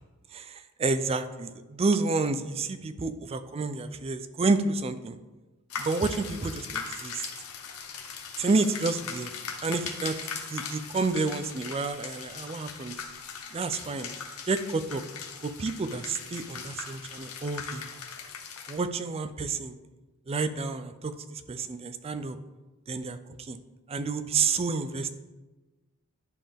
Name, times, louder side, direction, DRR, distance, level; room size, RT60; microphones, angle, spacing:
voice 1, 0.3-5.2 5.8-7.2 8.4-9.3 9.6-10.2 10.5-13.0 13.5-14.1 14.5-15.0 15.4-17.9 18.7-19.7 20.3-22.4 22.9-23.6 23.9-25.1, right 3 dB, 25° right, 11 dB, 0.4 m, -29 dB
sound 1, 5.7-18.8, left 6 dB, 75° left, 0.8 m, -40 dB
11.0 x 3.7 x 3.5 m, 1.2 s
head